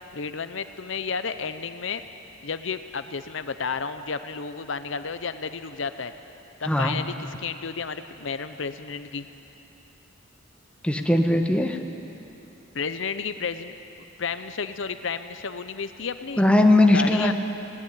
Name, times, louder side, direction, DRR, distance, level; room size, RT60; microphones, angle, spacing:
voice 1, 0.1-2.0 2.4-6.1 6.6-9.3 12.7-13.7 14.2-16.4 16.9-17.3, left 5 dB, 65° left, 11 dB, 0.7 m, -32 dB
voice 2, 6.6-7.0 10.8-11.8 16.4-17.3, left 1 dB, 5° left, 4 dB, 1.1 m, -19 dB
18.0 x 17.5 x 9.9 m, 2.9 s
head